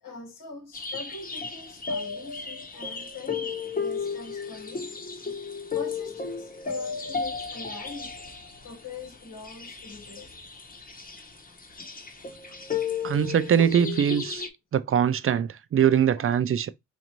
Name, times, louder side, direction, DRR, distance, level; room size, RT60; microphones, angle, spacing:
voice 1, 0.0-5.0 5.7-8.1 8.4-10.3 13.6-13.7 16.1-16.3, left 3 dB, 80° left, 1.5 m, -42 dB
sound 1, 0.7-14.5, left 5 dB, 25° left, 1.0 m, -34 dB
voice 2, 13.0-14.4 14.7-16.7, right 9 dB, 45° right, 0.4 m, -22 dB
4.3 x 2.6 x 3.0 m
cardioid pair, 105°, 32 cm